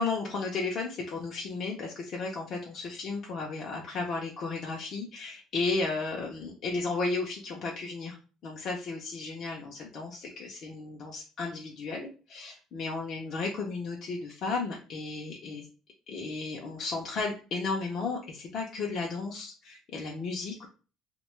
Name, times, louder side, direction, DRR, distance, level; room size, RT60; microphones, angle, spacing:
voice 1, 0.0-8.2 8.4-15.7 16.1-20.7, left 3 dB, 40° left, -1 dB, 0.4 m, -34 dB
2.6 x 2.2 x 3.0 m, 0.35 s
cardioid pair, 175°, 0 cm